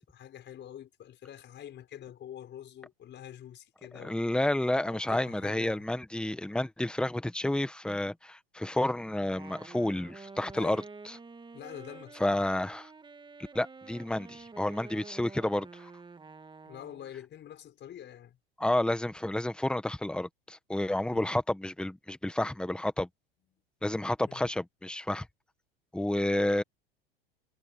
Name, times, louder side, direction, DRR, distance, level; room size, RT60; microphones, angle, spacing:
voice 1, 0.0-4.3 4.8-5.9 10.5-10.8 11.5-12.4 16.6-18.4 21.1-21.3 23.5-23.6 24.3-24.5, left 10 dB, 35° left, 5.7 m, -46 dB
voice 2, 3.9-10.8 12.2-12.9 13.5-15.9 18.6-23.1 23.8-25.3 25.9-26.6, left 1 dB, 5° left, 1.6 m, -30 dB
Wind instrument woodwind instrument, 9.2-17.2, right 4 dB, 15° right, 2.6 m, -49 dB
hypercardioid pair, 90°, 30 cm